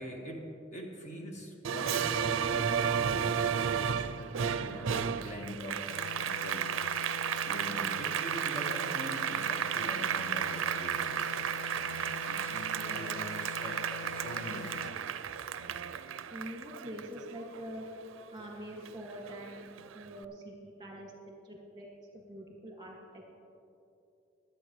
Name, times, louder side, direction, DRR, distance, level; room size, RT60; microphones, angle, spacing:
voice 1, 0.0-4.1 4.6-5.9 6.2-6.7 7.4-15.2 15.5-15.8, equal, 35° left, 0 dB, 1.7 m, -43 dB
Applause, 1.6-18.5 18.9-20.0, right 8 dB, 85° right, 0.4 m, -33 dB
sound 1, 5.9-14.9, left 6 dB, 75° left, 0.6 m, -44 dB
voice 2, 12.8-13.1 16.3-17.9 18.3-21.9 22.1-23.2, equal, 25° right, -1 dB, 2.1 m, -45 dB
23.5 x 8.4 x 3.2 m, 2.7 s
head